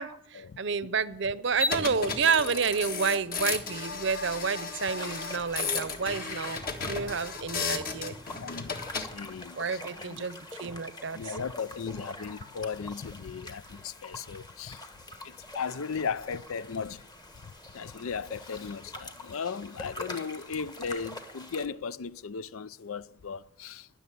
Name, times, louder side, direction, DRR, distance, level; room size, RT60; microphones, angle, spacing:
voice 1, 0.0-8.1 9.6-11.2, right 5 dB, 55° right, 0.7 m, -30 dB
sound 1, 1.6-9.1, left 4 dB, 45° left, 1.6 m, -34 dB
sound 2, 5.0-21.7, left 1 dB, 20° left, 1.2 m, -45 dB
voice 2, 8.4-10.3 11.1-14.9 15.2-17.0 17.4-23.9, left 6 dB, 80° left, 0.5 m, -37 dB
20.5 x 6.9 x 9.9 m
head